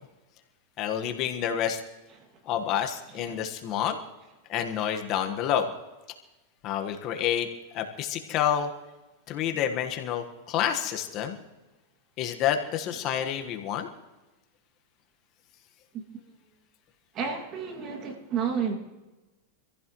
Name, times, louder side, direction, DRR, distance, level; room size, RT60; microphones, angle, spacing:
voice 1, 0.8-1.8 2.4-4.0 4.5-5.7 6.6-7.5 7.7-8.7 9.3-11.3 12.2-13.9, left 9 dB, 40° left, 5 dB, 1.4 m, -28 dB
voice 2, 17.1-18.7, right 7 dB, 35° right, 4 dB, 2.3 m, -30 dB
25.5 x 15.0 x 3.1 m, 1.1 s
supercardioid pair, 135°, 0 cm